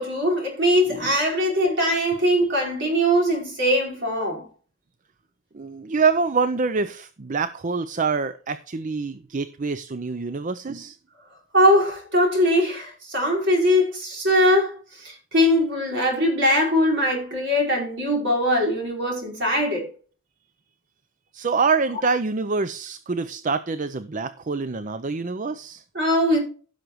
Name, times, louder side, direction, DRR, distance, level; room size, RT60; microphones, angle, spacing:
voice 1, 0.0-4.5 11.5-19.9 25.9-26.4, equal, 60° right, 4.7 m, -21 dB
voice 2, 5.5-11.0 21.3-25.8, right 4 dB, 40° right, 0.5 m, -25 dB
15.5 x 6.5 x 3.1 m
head